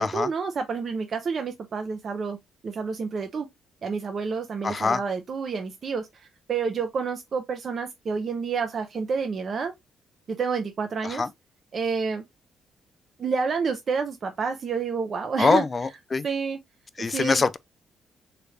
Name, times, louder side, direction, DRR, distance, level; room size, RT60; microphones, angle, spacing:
voice 1, 0.0-2.4 2.6-3.5 3.8-6.1 6.5-9.7 10.3-11.2 11.7-12.2 13.2-15.6 16.2-16.6 17.0-17.4, right 5 dB, 50° right, 0.6 m, -29 dB
voice 2, 4.6-5.0 11.0-11.3 15.4-16.3 17.0-17.6, left 4 dB, 35° left, 0.4 m, -24 dB
3.2 x 2.5 x 3.1 m
cardioid pair, 90°, 0 cm